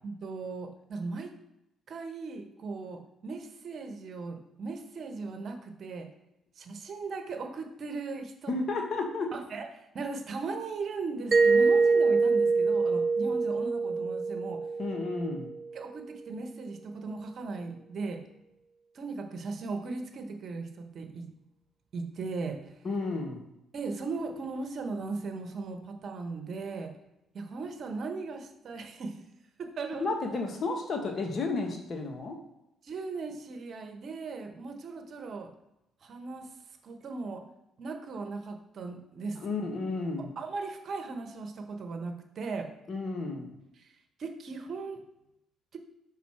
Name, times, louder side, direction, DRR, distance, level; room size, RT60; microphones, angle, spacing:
voice 1, 0.0-1.3 1.9-6.1 6.6-8.5 9.3-14.6 15.7-18.2 18.9-21.3 21.9-22.6 23.7-26.9 27.3-29.2 29.6-30.1 32.8-35.5 36.0-36.5 36.8-37.4 37.8-39.4 40.2-42.7 43.8-43.9 44.2-45.0 45.7-45.8, right 4 dB, 55° right, 5 dB, 1.1 m, -38 dB
voice 2, 8.5-9.3 14.8-15.5 22.8-23.4 30.0-32.4 39.4-40.3 42.9-43.6, left 3 dB, 45° left, 3 dB, 1.5 m, -32 dB
Mallet percussion, 11.3-15.9, right 4 dB, 35° right, 0.6 m, -25 dB
5.9 x 4.0 x 4.4 m, 0.88 s
hypercardioid pair, 55°, 0 cm